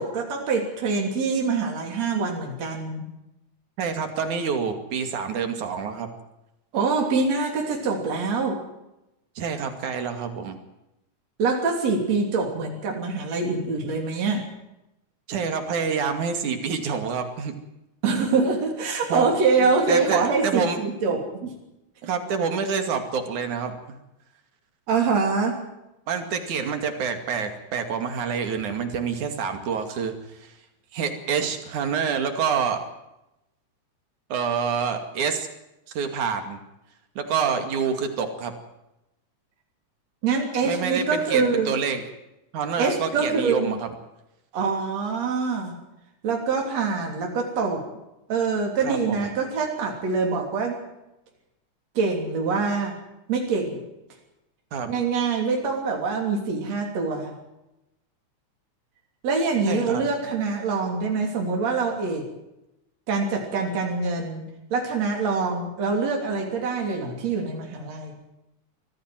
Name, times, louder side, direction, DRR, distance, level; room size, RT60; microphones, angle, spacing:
voice 1, 0.0-3.1 6.7-8.6 11.4-14.4 18.0-21.6 24.9-25.6 40.2-41.7 42.8-43.8 44.5-45.7 46.2-47.8 48.3-50.8 52.0-53.0 53.3-53.8 54.9-57.3 59.2-62.2 63.1-64.4 64.7-68.2, right 4 dB, 60° right, 1 dB, 4.3 m, -25 dB
voice 2, 3.8-6.1 9.4-10.6 15.3-17.5 19.1-19.3 19.9-20.8 21.1-21.2 22.0-23.8 26.1-30.1 30.4-30.5 30.9-32.8 34.3-35.5 35.9-36.6 37.2-38.5 40.6-42.0 42.5-43.9 48.8-49.3 54.7-54.9 59.7-60.0, right 6 dB, 75° right, 6 dB, 3.9 m, -27 dB
24.5 x 16.0 x 7.6 m, 0.91 s
omnidirectional pair, 3.4 m